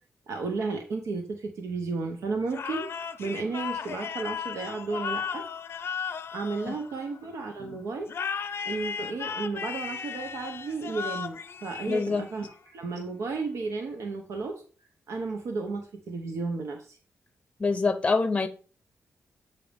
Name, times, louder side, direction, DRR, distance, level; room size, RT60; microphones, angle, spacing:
voice 1, 0.3-2.9 3.2-5.4 6.3-8.1 8.6-14.5 15.1-17.0, right 4 dB, 80° right, 0.9 m, -33 dB
sound 1, 2.5-7.3 8.1-12.5, left 6 dB, 55° left, 0.5 m, -35 dB
voice 2, 11.9-12.2 17.6-18.5, left 4 dB, 20° left, 0.7 m, -25 dB
8.3 x 2.9 x 5.1 m
wide cardioid pair, 125°, 5 cm